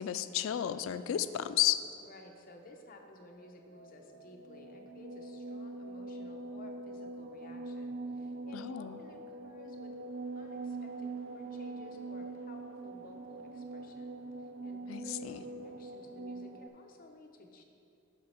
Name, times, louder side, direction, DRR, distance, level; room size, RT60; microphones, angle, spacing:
voice 1, 0.0-1.8 8.5-9.0 14.9-15.4, left 11 dB, 75° left, 13 dB, 0.3 m, -32 dB
voice 2, 2.0-10.0 10.3-14.1 14.4-17.6, left 1 dB, 45° left, 2 dB, 0.7 m, -55 dB
sound 1, 3.3-16.7, right 2 dB, 70° right, 0.4 m, -43 dB
7.5 x 6.1 x 4.3 m, 2.6 s
head